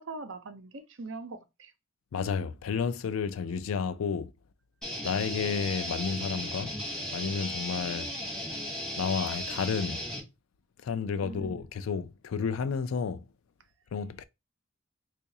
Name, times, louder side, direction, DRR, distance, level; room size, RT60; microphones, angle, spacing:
voice 1, 0.0-1.7 11.2-11.7, right 3 dB, 70° right, 0.7 m, -42 dB
voice 2, 2.1-4.3 5.0-6.7 7.1-8.1 9.0-10.0 10.8-13.3 13.9-14.2, left 6 dB, 80° left, 0.4 m, -31 dB
sound 1, 4.8-10.2, equal, 5° left, 1.5 m, -36 dB
3.9 x 2.4 x 2.7 m
head